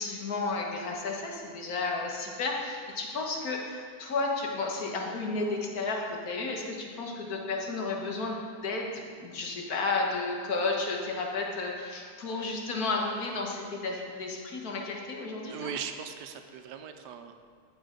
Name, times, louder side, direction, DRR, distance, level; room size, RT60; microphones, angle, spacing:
voice 1, 0.0-15.7, left 3 dB, 60° left, 0 dB, 1.7 m, -32 dB
voice 2, 15.5-17.4, right 7 dB, 85° right, 7 dB, 1.3 m, -39 dB
13.5 x 6.4 x 3.8 m, 2.1 s
omnidirectional pair, 1.8 m